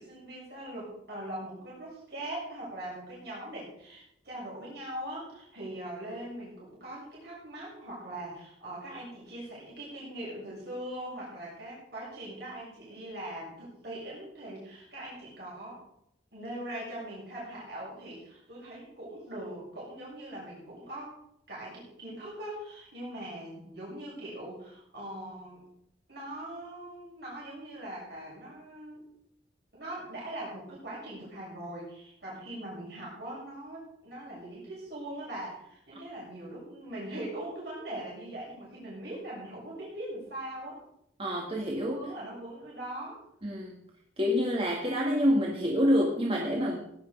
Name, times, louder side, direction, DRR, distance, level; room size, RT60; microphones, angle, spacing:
voice 1, 0.0-15.8 16.3-21.1 21.5-25.6 26.1-29.0 29.7-40.8 41.8-43.2, right 1 dB, 65° right, -6 dB, 7.1 m, -41 dB
voice 2, 41.2-41.9 43.4-43.8 44.2-46.8, equal, 30° right, 0 dB, 2.0 m, -27 dB
17.5 x 11.0 x 5.3 m, 0.76 s
head